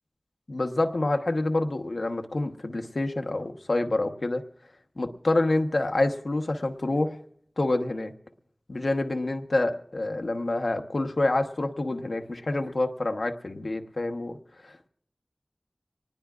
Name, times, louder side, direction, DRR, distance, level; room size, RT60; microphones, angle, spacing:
voice 1, 0.5-4.4 5.0-7.2 7.6-8.1 8.7-14.4 14.6-14.9, left 2 dB, 85° left, 5 dB, 1.0 m, -27 dB
25.0 x 19.5 x 2.5 m, 0.65 s
wide cardioid pair, 50°, 0 cm